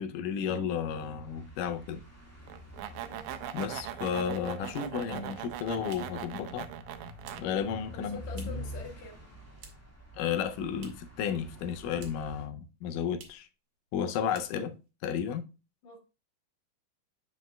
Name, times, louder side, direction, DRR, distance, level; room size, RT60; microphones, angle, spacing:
voice 1, 0.0-2.0 3.5-6.7 7.4-8.6 10.1-13.5 13.9-14.8 15.0-15.4, left 8 dB, 80° left, 2.1 m, -33 dB
sound 1, 0.8-12.4, equal, 10° left, 1.0 m, -47 dB
sound 2, 2.5-7.4, right 11 dB, 85° right, 1.7 m, -40 dB
voice 2, 3.0-3.3 7.9-9.2 15.8-16.0, left 4 dB, 60° left, 2.6 m, -45 dB
sound 3, 5.9-8.8 9.0-10.0 10.3-11.2 11.5-12.4 12.7-12.8 13.1-13.5 13.9-14.0 14.3-14.9, right 6 dB, 65° right, 2.0 m, -55 dB
7.3 x 5.9 x 2.2 m
omnidirectional pair, 3.8 m